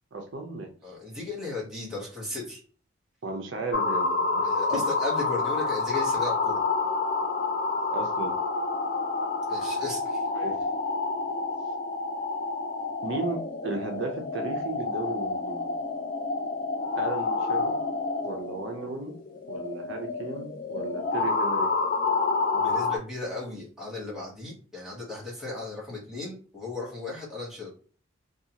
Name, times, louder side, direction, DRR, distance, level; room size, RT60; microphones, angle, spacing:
voice 1, 0.1-0.7 3.2-4.8 7.9-8.4 9.5-9.7 10.3-10.7 13.0-15.7 16.9-17.8 18.2-19.1 19.5-21.7, right 3 dB, 65° right, 3 dB, 0.5 m, -35 dB
voice 2, 0.8-2.6 4.4-6.6 9.5-10.3 22.5-27.7, left 3 dB, 5° right, -5 dB, 1.0 m, -35 dB
sound 1, 3.7-23.0, left 3 dB, 45° left, 0.3 m, -28 dB
2.6 x 2.3 x 2.7 m, 0.40 s
head